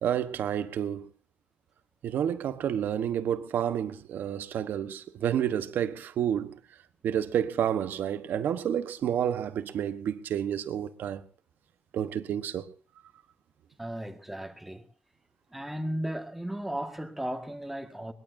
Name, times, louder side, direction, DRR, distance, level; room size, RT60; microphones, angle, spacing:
voice 1, 0.0-1.1 2.0-6.6 7.0-11.2 11.9-12.7, right 9 dB, 70° right, 1.2 m, -30 dB
voice 2, 13.8-14.9 15.5-18.1, right 1 dB, 5° right, 1.7 m, -35 dB
21.5 x 20.0 x 2.7 m
cardioid pair, 130°, 3 cm